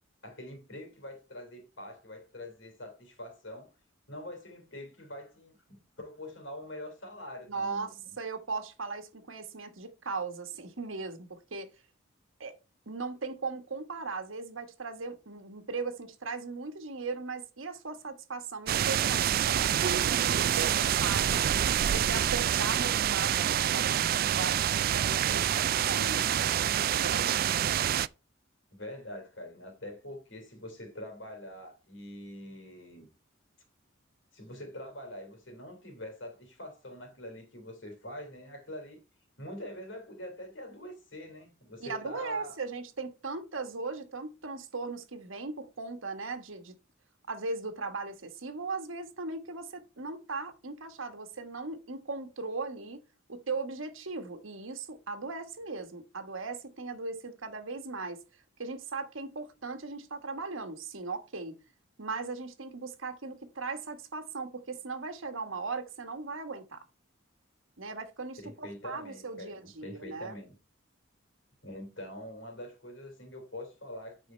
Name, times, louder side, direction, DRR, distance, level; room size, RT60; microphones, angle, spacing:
voice 1, 0.2-3.7 4.1-8.1 28.7-33.1 34.3-39.0 39.4-42.6 68.4-70.5 71.6-74.3, left 1 dB, 65° left, 3.1 m, -44 dB
voice 2, 7.5-11.7 12.4-12.6 12.9-21.5 21.9-26.5 26.8-27.5 41.8-46.7 47.3-53.0 53.3-58.2 58.6-61.6 62.0-66.8 67.8-70.4, right 4 dB, 85° right, 1.4 m, -38 dB
sound 1, 18.7-28.1, right 10 dB, 45° right, 0.3 m, -27 dB
9.3 x 5.2 x 4.4 m
head